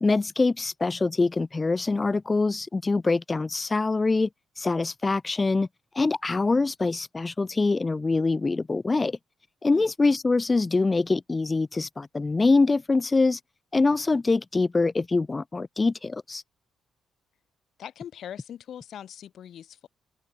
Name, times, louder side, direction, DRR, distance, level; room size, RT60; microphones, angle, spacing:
voice 1, 0.0-4.3 4.6-5.7 5.9-9.2 9.6-13.4 13.7-16.4, left 3 dB, 25° left, 0.3 m, -24 dB
voice 2, 17.8-19.9, left 10 dB, 65° left, 1.1 m, -41 dB
cardioid pair, 90°, 0 cm